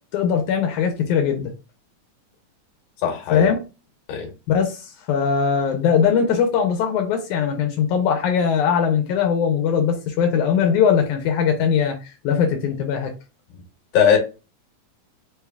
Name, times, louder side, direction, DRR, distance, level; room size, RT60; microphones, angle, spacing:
voice 1, 0.1-1.5 3.3-3.6 4.5-13.1, left 7 dB, 80° left, 2.1 m, -20 dB
voice 2, 3.0-3.5 4.1-4.3 13.9-14.2, left 8 dB, 60° left, 2.1 m, -18 dB
4.9 x 3.3 x 2.3 m
omnidirectional pair, 3.5 m